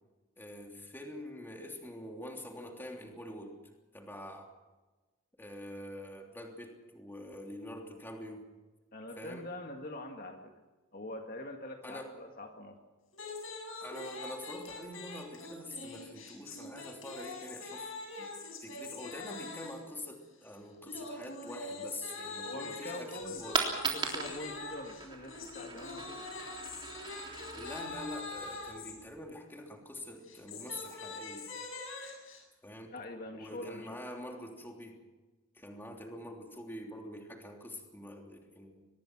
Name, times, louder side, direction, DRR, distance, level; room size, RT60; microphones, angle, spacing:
voice 1, 0.4-3.6 3.9-4.5 5.4-8.4 9.2-9.5 11.8-12.1 13.8-17.9 18.2-18.3 18.6-23.6 27.5-31.5 32.6-32.9 33.3-35.0 35.5-38.8, left 1 dB, 10° left, 2 dB, 3.1 m, -45 dB
voice 2, 8.9-10.5 10.9-12.8 22.4-26.3 32.9-34.0, left 1 dB, 45° left, 3 dB, 1.9 m, -44 dB
sound 1, 13.1-19.9 20.9-28.9 30.2-32.4, left 3 dB, 75° left, 7.5 m, -44 dB
Coin (dropping), 23.2-29.2, right 4 dB, 25° right, 3.6 m, -39 dB
24.0 x 21.0 x 6.1 m, 1.2 s
head